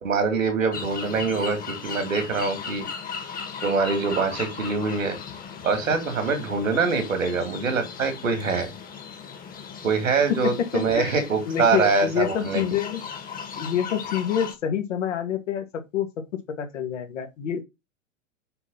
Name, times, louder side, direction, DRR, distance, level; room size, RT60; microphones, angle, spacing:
voice 1, 0.0-2.8 3.6-5.2 5.6-8.7 9.8-12.6, right 4 dB, 80° right, 3.0 m, -24 dB
sound 1, 0.7-14.5, left 6 dB, 20° left, 1.8 m, -37 dB
voice 2, 10.3-11.1 11.5-13.0 13.5-16.1 16.6-17.6, left 9 dB, 65° left, 2.2 m, -27 dB
7.0 x 4.4 x 5.7 m
figure-of-eight pair, 100°, 39 cm